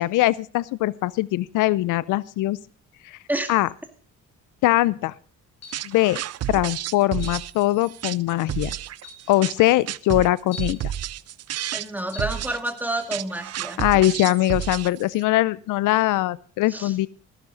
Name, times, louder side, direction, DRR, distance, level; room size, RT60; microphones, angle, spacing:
voice 1, 0.0-2.6 3.5-3.7 4.6-5.1 5.8-6.2 6.5-8.8 9.3-10.8 13.8-17.1, left 17 dB, 85° left, 21 dB, 0.6 m, -21 dB
sound 1, 5.6-6.0 7.2-7.5 8.4-8.5 9.0-9.3 10.5-10.9 12.1-12.4, left 4 dB, 60° left, 4.8 m, -42 dB
sound 2, 5.7-15.2, right 12 dB, 55° right, 0.5 m, -31 dB
voice 2, 11.7-13.8 16.7-16.9, right 1 dB, 5° right, 6 dB, 2.3 m, -29 dB
14.5 x 12.0 x 3.8 m, 0.42 s
cardioid pair, 90°, 30 cm